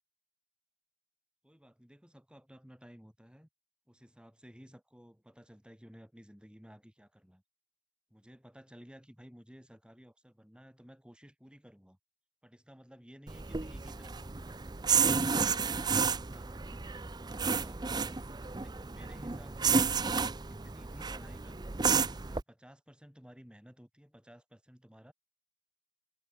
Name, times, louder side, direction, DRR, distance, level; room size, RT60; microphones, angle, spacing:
voice 1, 1.4-3.5 3.9-7.4 8.1-12.0 12.4-14.6 15.4-18.2 18.6-19.8 20.1-25.1, equal, 5° right, 5.6 m, -56 dB
sound 1, 13.3-22.4, right 5 dB, 20° right, 0.6 m, -31 dB
head